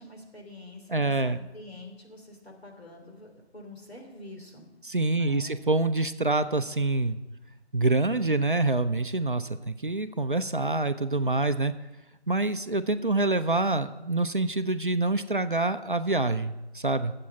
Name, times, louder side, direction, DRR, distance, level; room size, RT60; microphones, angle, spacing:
voice 1, 0.0-4.7 5.1-5.5, left 1 dB, 65° left, 2 dB, 3.1 m, -46 dB
voice 2, 0.9-1.4 4.8-7.2 7.7-11.7 12.3-17.1, right 2 dB, 50° right, 10 dB, 0.5 m, -26 dB
8.7 x 7.6 x 8.3 m, 1.0 s
figure-of-eight pair, 180°, 33 cm